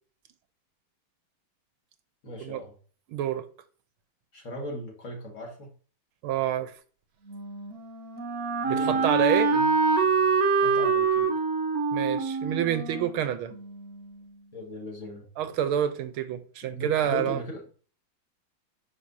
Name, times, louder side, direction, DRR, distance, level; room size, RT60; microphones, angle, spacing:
voice 1, 2.2-2.7 4.3-5.7 8.6-9.1 9.5-9.7 10.6-11.3 14.5-15.3 16.7-17.7, equal, 40° left, 2.0 m, -38 dB
voice 2, 3.1-3.5 6.2-6.7 8.7-9.5 11.9-13.5 15.4-17.4, right 10 dB, 85° right, 1.6 m, -27 dB
Wind instrument woodwind instrument, 7.3-14.1, right 4 dB, 55° right, 1.1 m, -26 dB
9.4 x 5.9 x 2.7 m
omnidirectional pair, 2.3 m